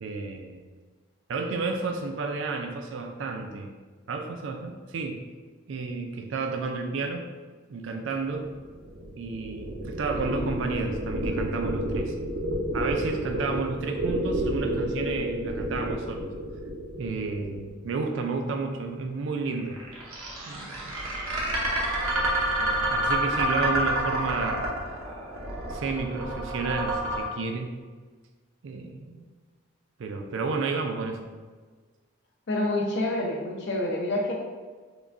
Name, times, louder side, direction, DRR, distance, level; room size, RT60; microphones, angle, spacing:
voice 1, 0.0-0.6 1.3-3.7 4.1-5.2 5.7-7.3 7.7-8.5 9.2-12.1 12.7-16.3 17.0-19.8 20.5-21.1 22.6-24.7 25.7-27.7 28.6-29.3 30.0-31.3, right 4 dB, 60° right, 4 dB, 0.4 m, -31 dB
sound 1, 8.5-18.2 19.6-27.2, right 1 dB, 85° right, 0.8 m, -29 dB
voice 2, 32.5-34.3, left 1 dB, 55° left, 0 dB, 0.6 m, -27 dB
4.8 x 2.2 x 2.5 m, 1.4 s
head